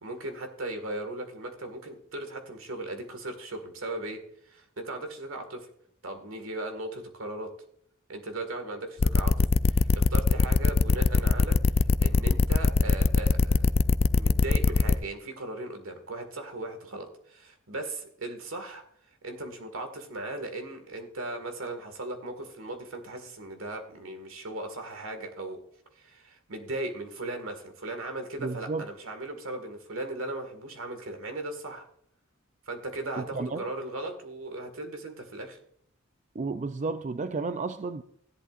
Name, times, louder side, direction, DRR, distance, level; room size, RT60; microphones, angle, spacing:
voice 1, 0.0-4.2 4.5-5.7 6.0-7.5 8.1-13.6 14.1-18.8 19.2-25.6 26.0-31.8 32.7-35.6, right 2 dB, 75° right, 6 dB, 1.9 m, -37 dB
sound 1, 9.0-15.0, left 3 dB, 30° left, 0.3 m, -21 dB
voice 2, 28.4-28.9 33.2-33.6 36.4-38.0, right 3 dB, 35° right, 10 dB, 0.4 m, -32 dB
15.5 x 11.0 x 2.5 m, 0.67 s
head